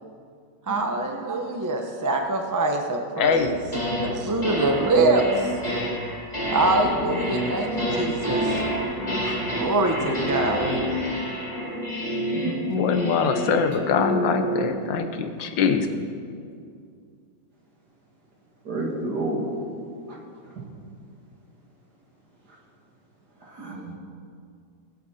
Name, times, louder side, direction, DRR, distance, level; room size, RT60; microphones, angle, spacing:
voice 1, 0.7-3.6 4.0-5.5 6.5-8.6 9.5-10.8, right 2 dB, 20° right, 3 dB, 0.4 m, -24 dB
voice 2, 3.2-3.6 12.7-15.9, left 6 dB, 85° left, 7 dB, 1.6 m, -23 dB
sound 1, 3.4-4.1 4.4-14.8, equal, 20° left, 3.1 m, -28 dB
voice 3, 18.6-19.5 20.1-20.2 23.6-23.9, right 2 dB, 60° right, -2 dB, 2.7 m, -29 dB
19.0 x 8.3 x 4.3 m, 2.3 s
omnidirectional pair, 2.0 m